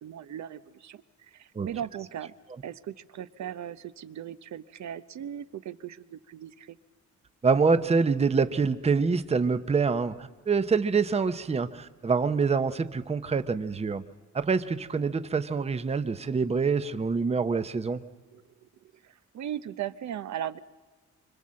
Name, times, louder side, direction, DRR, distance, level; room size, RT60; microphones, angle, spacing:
voice 1, 0.0-2.3 2.6-6.8 18.3-18.4 18.8-20.6, right 10 dB, 65° right, 13 dB, 0.8 m, -38 dB
voice 2, 7.4-14.0 14.3-18.0, right 5 dB, 20° right, 12 dB, 0.8 m, -26 dB
25.0 x 25.0 x 7.6 m, 1.3 s
wide cardioid pair, 145°, 30 cm